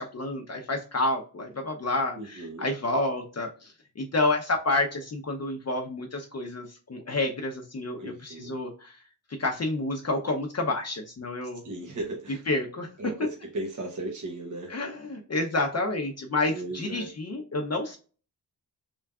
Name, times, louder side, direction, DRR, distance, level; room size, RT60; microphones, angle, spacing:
voice 1, 0.0-9.0 9.4-11.6 12.5-12.9 14.7-18.0, left 2 dB, 40° left, 1 dB, 0.6 m, -29 dB
voice 2, 2.1-2.7 8.0-8.6 11.6-12.4 12.7-14.8 16.5-17.1, right 2 dB, 45° right, -1 dB, 1.0 m, -36 dB
3.8 x 3.4 x 2.3 m, 0.36 s
wide cardioid pair, 105°, 40 cm